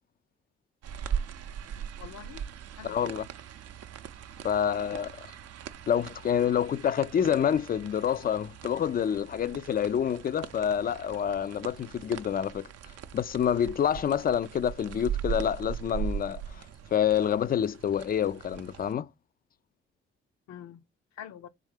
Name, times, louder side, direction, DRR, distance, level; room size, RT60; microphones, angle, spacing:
sound 1, 0.8-18.9, right 8 dB, 55° right, 0.6 m, -40 dB
voice 1, 2.0-2.4 2.8-3.0 4.7-5.1 14.2-14.4 20.5-20.8 21.2-21.5, left 10 dB, 60° left, 0.7 m, -45 dB
voice 2, 2.8-3.3 4.4-5.1 5.9-12.7 13.1-16.6 16.9-19.1, left 9 dB, 30° left, 0.4 m, -27 dB
3.7 x 3.5 x 3.3 m
hypercardioid pair, 45°, 30 cm